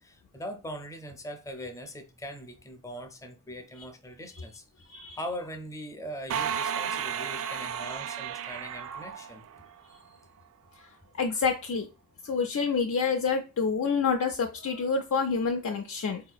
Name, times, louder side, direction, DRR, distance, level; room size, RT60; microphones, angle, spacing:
voice 1, 0.0-4.6 5.1-9.4 9.9-10.0, equal, 15° left, 0.6 m, -41 dB
sound 1, 6.3-10.0, right 8 dB, 65° right, 0.3 m, -33 dB
voice 2, 11.2-11.9 12.2-16.2, left 5 dB, 65° left, 0.4 m, -27 dB
4.0 x 2.8 x 2.3 m
head